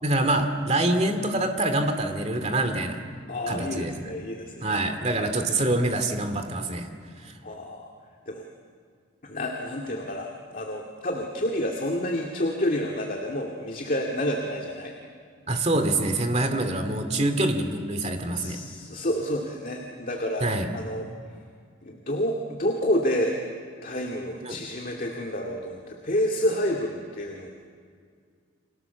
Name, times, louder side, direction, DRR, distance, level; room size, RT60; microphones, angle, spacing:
voice 1, 0.0-3.0 3.5-3.9 4.6-6.9 7.2-7.3 15.5-18.6 20.4-20.7 24.4-24.6, right 2 dB, 30° right, 6 dB, 2.4 m, -25 dB
voice 2, 3.3-4.8 7.4-7.9 8.3-8.5 9.2-14.9 17.1-17.3 18.3-20.5 20.7-21.1 21.8-23.4 23.8-27.5, equal, 40° left, 1 dB, 2.2 m, -29 dB
30.0 x 25.5 x 7.1 m, 2.1 s
head